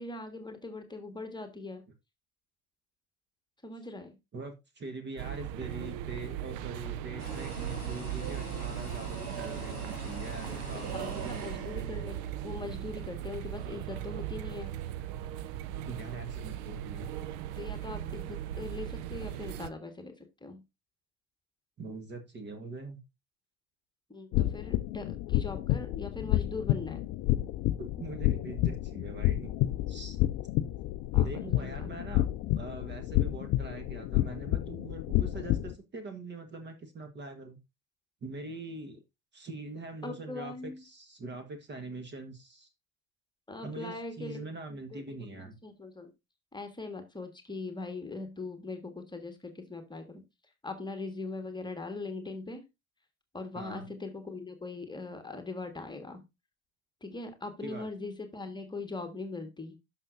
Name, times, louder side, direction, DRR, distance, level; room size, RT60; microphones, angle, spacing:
voice 1, 0.0-1.8 3.6-4.2 10.5-14.8 17.5-20.6 24.1-27.1 31.1-31.9 40.0-40.8 41.2-41.3 43.5-44.4 44.7-46.1 46.5-50.2 50.6-52.6 53.3-56.2 57.0-59.8, left 3 dB, 10° left, 6 dB, 1.7 m, -41 dB
voice 2, 4.3-11.3 15.8-17.1 21.8-23.0 27.8-29.5 29.9-30.2 31.1-32.3 32.5-37.6 38.2-39.0 39.3-42.7 43.6-45.6 53.5-53.9 57.6-57.9, right 3 dB, 25° right, 8 dB, 1.5 m, -43 dB
sound 1, 5.2-19.7, right 11 dB, 45° right, 0.7 m, -38 dB
sound 2, 7.2-12.4, equal, 90° right, 2.9 m, -43 dB
sound 3, 24.3-35.7, left 15 dB, 35° left, 0.6 m, -30 dB
11.5 x 6.1 x 2.6 m, 0.23 s
figure-of-eight pair, 75°, 43 cm